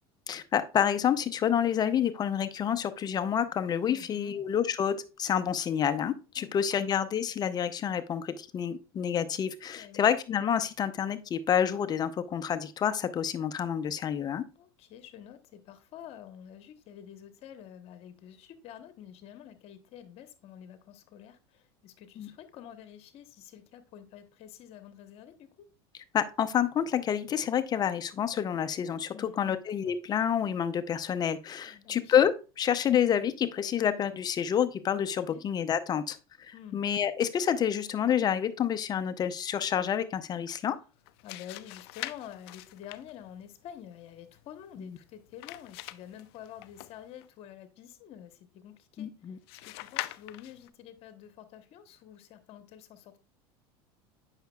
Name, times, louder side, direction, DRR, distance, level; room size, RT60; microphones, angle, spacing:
voice 1, 0.3-14.5 22.2-22.3 26.1-40.8 44.8-45.0 49.0-49.4, left 8 dB, 30° left, 11 dB, 0.6 m, -28 dB
voice 2, 3.9-4.3 6.4-6.5 9.7-10.0 14.6-25.7 29.1-29.6 31.6-32.2 35.3-35.4 36.5-36.8 41.2-49.1 49.5-53.2, left 10 dB, 50° left, 10 dB, 1.0 m, -48 dB
sound 1, 40.9-47.3 49.5-50.7, left 17 dB, 75° left, 0.4 m, -44 dB
7.9 x 5.7 x 2.3 m, 0.32 s
supercardioid pair, 105°, 13 cm